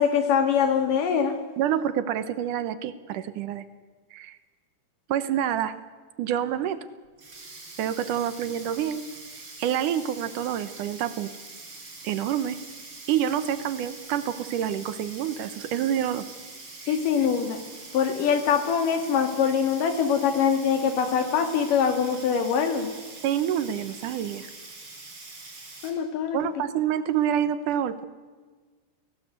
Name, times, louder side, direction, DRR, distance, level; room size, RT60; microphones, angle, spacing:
voice 1, 0.0-1.4 16.9-17.6 17.9-22.9 25.8-26.4, left 7 dB, 85° left, 6 dB, 3.8 m, -23 dB
voice 2, 1.6-3.6 4.1-4.4 5.1-5.8 6.2-6.8 7.8-9.0 9.6-11.3 12.0-12.6 13.1-16.3 16.8-17.0 23.2-24.5 26.3-28.0, right 10 dB, 80° right, 12 dB, 2.5 m, -27 dB
Sink (filling or washing), 7.1-25.9, right 3 dB, 40° right, 4.6 m, -44 dB
29.5 x 18.0 x 8.1 m, 1.4 s
omnidirectional pair, 3.7 m